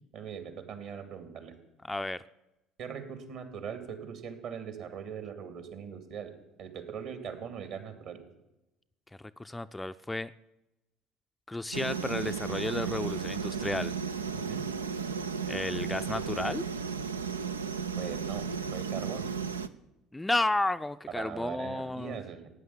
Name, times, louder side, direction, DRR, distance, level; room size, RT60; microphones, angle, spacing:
voice 1, 0.1-1.5 2.8-6.3 6.6-8.2 14.3-14.7 18.0-18.5 18.7-19.3 21.1-22.5, right 7 dB, 60° right, 9 dB, 2.6 m, -40 dB
voice 2, 1.9-2.2 9.2-10.3 11.5-13.9 15.5-16.6 20.1-22.2, left 2 dB, 10° left, 10 dB, 0.5 m, -32 dB
sound 1, 11.7-19.7, right 6 dB, 85° right, 0.5 m, -34 dB
16.0 x 9.4 x 8.5 m, 0.95 s
figure-of-eight pair, 60°, 0 cm